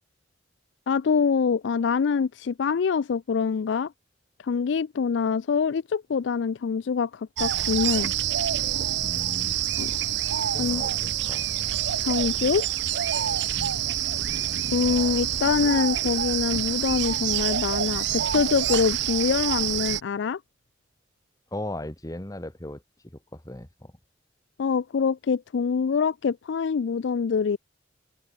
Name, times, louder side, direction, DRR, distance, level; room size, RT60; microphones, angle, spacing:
voice 1, 0.9-3.9 4.4-8.1 9.8-9.9 10.6-10.8 12.0-12.7 14.7-20.4 24.6-27.6, left 6 dB, 65° left, 0.4 m, -25 dB
sound 1, 7.4-20.0, right 10 dB, 60° right, 0.7 m, -27 dB
voice 2, 9.0-9.6 10.4-11.4 13.6-13.8 21.5-22.8 23.3-23.9, left 1 dB, 20° left, 1.2 m, -37 dB
head